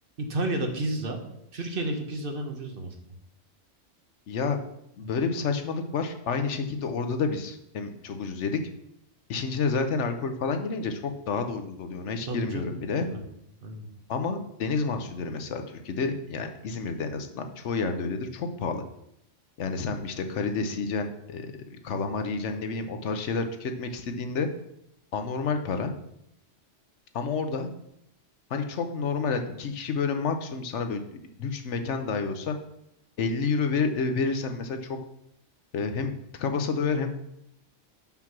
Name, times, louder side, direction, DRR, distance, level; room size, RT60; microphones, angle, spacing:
voice 1, 0.2-1.2 1.5-2.9 12.3-12.6 13.0-13.2 13.6-13.9, right 1 dB, 50° right, 3 dB, 1.2 m, -31 dB
voice 2, 4.3-4.6 5.0-8.6 9.3-13.1 14.1-18.8 19.6-24.5 25.1-25.9 27.1-27.7 28.5-31.0 31.4-32.6 33.2-35.0 35.7-36.1 36.4-37.1, left 4 dB, 75° left, 7 dB, 1.1 m, -29 dB
6.0 x 5.6 x 5.9 m, 0.79 s
omnidirectional pair, 1.2 m